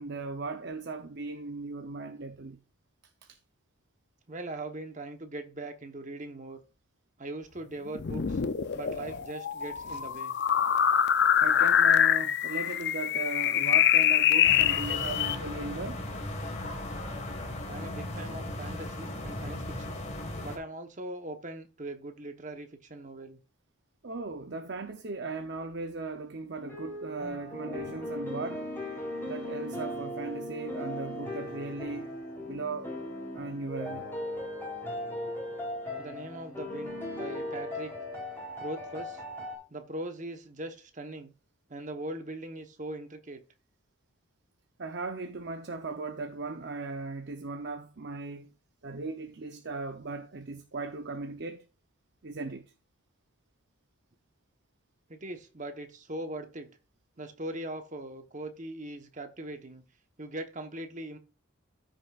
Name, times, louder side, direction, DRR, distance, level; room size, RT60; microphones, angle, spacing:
voice 1, 0.0-2.6 3.2-3.4 11.4-16.1 24.0-28.7 29.3-32.1 32.4-32.9 33.3-34.1 44.8-48.5 48.8-51.7 52.2-52.6, right 3 dB, 50° right, 0.7 m, -37 dB
voice 2, 4.3-6.6 7.2-8.4 8.7-10.4 17.7-20.0 20.4-23.4 36.0-37.9 38.6-39.2 39.7-41.3 41.7-43.4 55.1-56.7 57.2-59.8 60.2-61.2, right 1 dB, 35° right, 1.1 m, -40 dB
sound 1, 7.9-15.4, left 9 dB, 50° left, 0.5 m, -25 dB
sound 2, 14.4-20.6, left 1 dB, 30° left, 1.7 m, -37 dB
sound 3, 26.6-39.6, left 1 dB, 10° left, 3.5 m, -38 dB
14.0 x 6.5 x 2.4 m
head